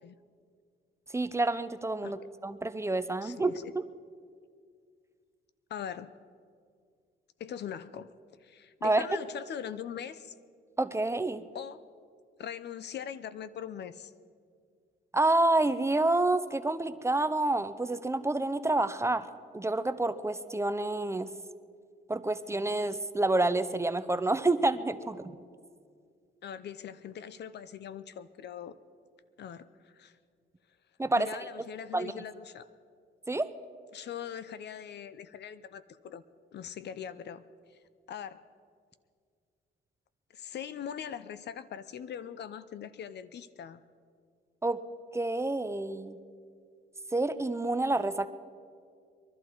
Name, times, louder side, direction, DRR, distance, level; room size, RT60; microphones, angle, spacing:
voice 1, 1.1-3.8 8.8-9.0 10.8-11.4 15.1-21.3 22.1-25.3 31.0-31.3 31.9-32.1 33.3-33.5 44.6-44.8 45.1-46.2 47.1-48.3, right 2 dB, 15° right, 11 dB, 0.6 m, -28 dB
voice 2, 3.2-3.7 5.7-6.1 7.4-8.1 8.4-10.4 11.5-11.8 12.4-14.1 26.4-28.8 29.4-30.2 31.2-32.7 33.9-36.2 36.5-37.4 37.7-37.8 38.1-38.4 40.3-43.8, left 8 dB, 60° left, 14 dB, 0.6 m, -41 dB
22.5 x 11.5 x 4.6 m, 2.1 s
cardioid pair, 90°, 20 cm